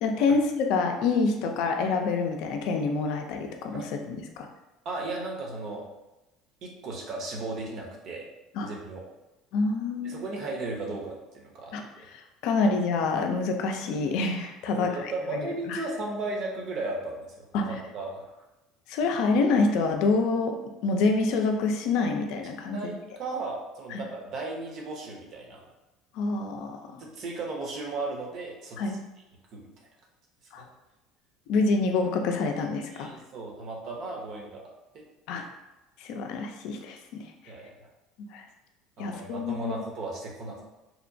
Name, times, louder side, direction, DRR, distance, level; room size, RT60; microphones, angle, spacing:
voice 1, 0.0-3.8 4.1-4.5 8.5-8.7 9.5-10.2 11.7-11.8 12.1-15.4 15.7-15.8 17.5-17.7 18.9-22.9 23.9-24.0 26.1-27.0 28.8-29.0 30.5-30.6 31.5-33.1 35.3-35.5 36.0-37.2 38.3-38.4 39.0-39.7, left 3 dB, 70° left, 4 dB, 0.4 m, -27 dB
voice 2, 4.8-5.8 6.6-8.2 8.6-9.0 10.0-12.1 14.7-17.6 17.9-18.3 22.7-25.7 27.0-28.8 29.5-29.6 30.6-30.7 32.9-35.0 35.3-35.4 37.5-37.9 39.0-40.6, right 2 dB, 55° right, -1 dB, 0.7 m, -36 dB
2.8 x 2.1 x 2.6 m, 1.0 s
supercardioid pair, 90°, 0 cm